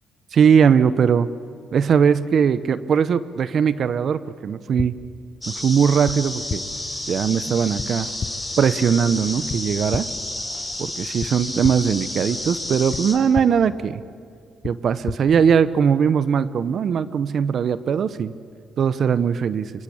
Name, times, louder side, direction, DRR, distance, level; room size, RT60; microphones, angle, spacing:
voice 1, 0.3-1.3 1.7-4.9 5.5-6.6 7.1-8.1 8.6-10.1 10.8-14.0 14.6-18.3 18.8-19.7, right 7 dB, 60° right, 15 dB, 0.8 m, -20 dB
sound 1, 4.8-4.9 6.0-6.2 6.5-6.6 7.8-7.9 8.2-8.3 9.5-9.6 9.9-10.0 11.2-11.3 11.6-11.7 12.9-13.0 13.3-13.5 14.6-14.7 15.1-15.2, left 6 dB, 40° left, 1.1 m, -28 dB
sound 2, 5.4-13.2, left 1 dB, 10° left, 4.7 m, -31 dB
25.0 x 22.5 x 8.7 m, 2.3 s
cardioid pair, 90°, 0 cm